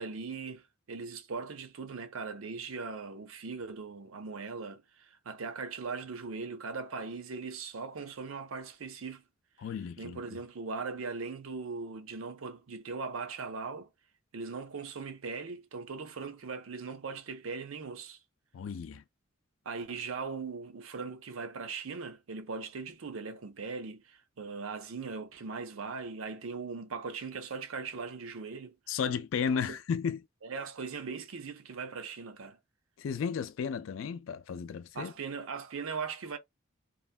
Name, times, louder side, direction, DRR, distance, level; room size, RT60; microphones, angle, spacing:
voice 1, 0.0-9.2 10.0-13.9 14.3-18.2 19.7-28.8 30.4-32.6 34.9-36.4, right 4 dB, 85° right, 0.6 m, -39 dB
voice 2, 9.6-10.2 18.5-19.0 28.9-30.2 33.0-35.1, left 6 dB, 70° left, 0.4 m, -33 dB
3.0 x 2.2 x 2.3 m
head